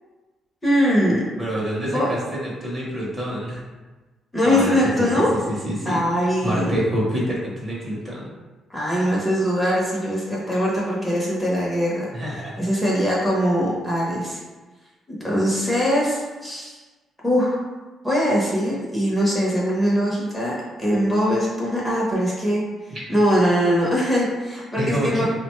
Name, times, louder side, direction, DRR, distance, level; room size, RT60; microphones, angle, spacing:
voice 1, 0.6-1.2 1.8-2.1 4.3-5.3 5.8-6.7 8.7-12.1 12.6-14.4 15.2-16.8 17.2-17.6 18.0-22.6 23.1-25.2, equal, 10° left, -6 dB, 0.7 m, -21 dB
voice 2, 1.4-3.6 4.4-8.3 12.1-12.6 22.9-23.0 24.8-25.2, equal, 25° right, -4 dB, 0.8 m, -27 dB
3.7 x 2.2 x 3.0 m, 1.2 s
cardioid pair, 145°, 0 cm